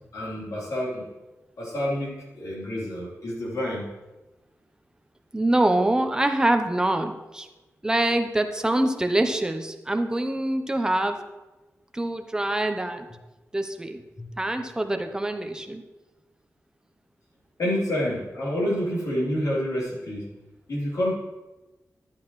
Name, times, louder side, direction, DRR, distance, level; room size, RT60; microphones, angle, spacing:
voice 1, 0.1-1.1 1.6-3.9 14.2-14.3 17.6-20.3 20.7-21.1, equal, 85° left, -6 dB, 3.5 m, -28 dB
voice 2, 5.3-7.5 7.8-11.2 11.9-13.1 13.5-14.0 14.4-15.8, right 1 dB, 15° right, 6 dB, 0.7 m, -25 dB
12.0 x 8.6 x 3.1 m, 1.1 s
wide cardioid pair, 160°, 6 cm